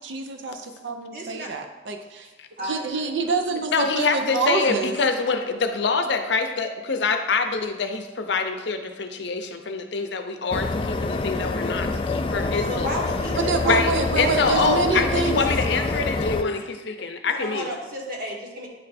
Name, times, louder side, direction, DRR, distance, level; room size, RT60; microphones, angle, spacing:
voice 1, 0.0-2.3 2.6-5.0 13.4-15.4, right 4 dB, 75° right, 5 dB, 0.5 m, -26 dB
voice 2, 1.1-1.5 2.6-3.1 3.5-3.6 12.7-14.8 17.3-18.7, right 1 dB, 50° right, -2 dB, 1.4 m, -32 dB
voice 3, 3.7-12.9 13.6-17.7, left 4 dB, 70° left, 6 dB, 0.6 m, -25 dB
sound 1, 10.5-16.4, left 3 dB, 30° left, 0.3 m, -26 dB
9.0 x 3.3 x 4.1 m, 1.1 s
head